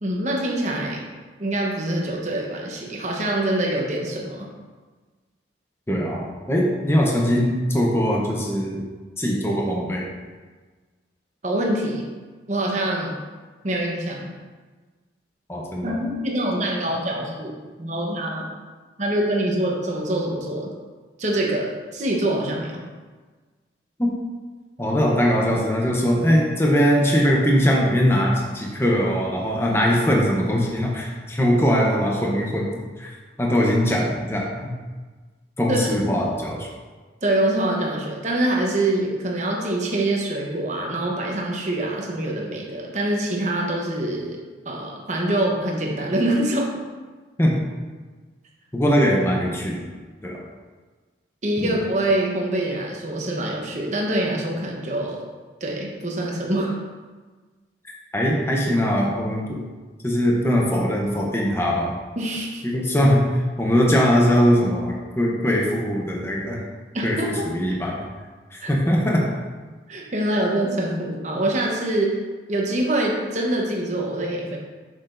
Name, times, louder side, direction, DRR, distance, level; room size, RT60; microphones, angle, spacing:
voice 1, 0.0-1.1 1.4-4.5 11.4-12.1 12.5-13.2 13.6-14.3 15.8-18.5 19.0-20.7 21.2-22.7 35.7-35.8 37.2-44.4 44.6-46.7 51.4-55.2 55.6-56.8 62.2-62.6 66.9-67.4 68.6-68.7 69.9-72.1 72.5-74.6, right 1 dB, 40° right, -1 dB, 0.9 m, -25 dB
voice 2, 5.9-8.8 9.2-10.1 15.5-16.0 24.0-24.1 24.8-33.1 33.4-34.7 35.6-36.7 47.4-47.6 48.7-49.9 50.2-50.4 51.6-51.7 58.1-59.6 60.0-62.0 62.6-66.6 67.0-68.0 68.5-69.2, equal, 15° left, -2 dB, 0.7 m, -21 dB
6.5 x 5.9 x 2.6 m, 1.4 s
head